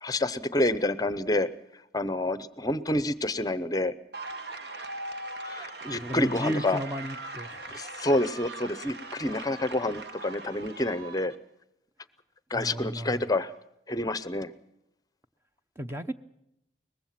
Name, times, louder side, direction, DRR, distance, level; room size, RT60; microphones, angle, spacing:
voice 1, 0.0-3.9 5.5-6.8 7.7-11.3 12.5-13.5 13.9-14.5, left 1 dB, 20° left, 14 dB, 0.7 m, -28 dB
sound 1, 4.1-11.3, right 2 dB, 65° right, 1.6 m, -40 dB
voice 2, 6.0-7.8 12.5-13.2 15.8-16.1, equal, 15° right, 8 dB, 0.7 m, -34 dB
23.0 x 20.5 x 5.9 m, 0.83 s
head